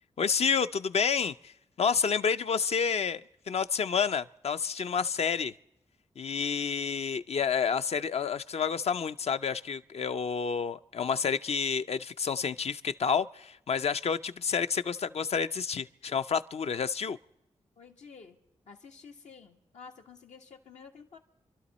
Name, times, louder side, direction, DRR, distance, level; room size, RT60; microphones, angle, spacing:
voice 1, 0.2-1.5 1.8-5.5 6.2-17.2, left 6 dB, 65° left, 0.5 m, -29 dB
voice 2, 17.7-18.4 18.7-21.2, left 5 dB, 85° left, 1.6 m, -51 dB
27.0 x 12.0 x 4.2 m
cardioid pair, 60°, 12 cm